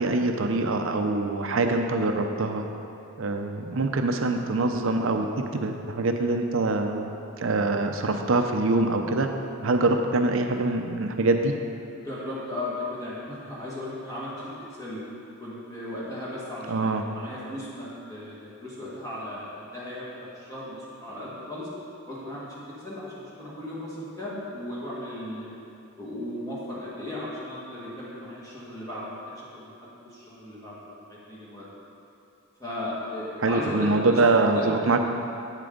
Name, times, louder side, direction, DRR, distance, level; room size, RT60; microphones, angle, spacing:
voice 1, 0.0-2.6 3.2-5.3 5.5-9.3 9.6-11.5 16.7-17.0 33.4-35.1, right 2 dB, 65° right, 5 dB, 0.6 m, -24 dB
voice 2, 11.9-15.0 15.4-21.7 22.1-25.5 26.0-31.7 32.6-34.2 34.5-34.8, left 1 dB, 15° left, -8 dB, 1.8 m, -36 dB
8.2 x 7.7 x 3.9 m, 2.6 s
head